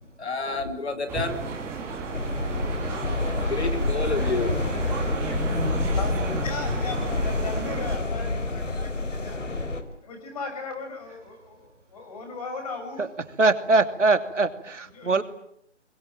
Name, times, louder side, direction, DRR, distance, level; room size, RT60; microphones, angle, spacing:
voice 1, 0.2-1.4 3.5-4.9 5.2-5.3, left 3 dB, 60° left, 4.5 m, -30 dB
sound 1, 1.1-8.0, right 4 dB, 5° right, 2.3 m, -33 dB
sound 2, 2.1-9.8, left 2 dB, 85° left, 4.4 m, -28 dB
voice 2, 6.4-9.5 10.0-13.1 14.9-15.2, left 4 dB, 30° left, 7.4 m, -37 dB
voice 3, 13.4-15.2, right 3 dB, 75° right, 2.8 m, -22 dB
27.5 x 22.0 x 9.2 m
figure-of-eight pair, 165°, 36 cm